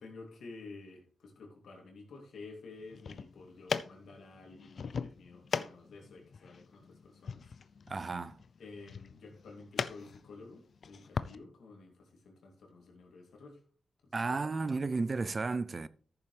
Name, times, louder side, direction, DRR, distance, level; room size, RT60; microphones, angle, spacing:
voice 1, 0.0-7.4 8.6-13.6 14.0-14.7, left 3 dB, 80° left, 2.9 m, -51 dB
sound 1, 2.8-11.3, left 5 dB, 60° left, 0.5 m, -40 dB
voice 2, 7.9-8.4 14.1-15.9, right 3 dB, 40° right, 0.5 m, -33 dB
13.5 x 7.1 x 3.4 m
cardioid pair, 85°, 0 cm